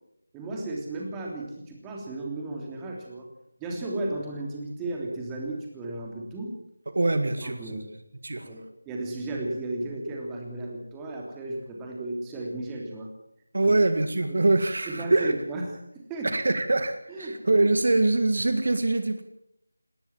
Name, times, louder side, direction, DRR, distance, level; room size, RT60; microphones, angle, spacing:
voice 1, 0.3-3.3 3.6-6.5 7.4-7.9 8.4-13.1 13.6-13.7 14.3-14.4 14.8-16.3 17.1-17.4, right 2 dB, 10° right, -1 dB, 3.2 m, -34 dB
voice 2, 6.9-7.8 8.2-8.5 13.5-15.3 16.2-19.2, right 2 dB, 55° right, 9 dB, 2.0 m, -24 dB
19.5 x 17.5 x 7.5 m, 0.78 s
figure-of-eight pair, 165°, 0 cm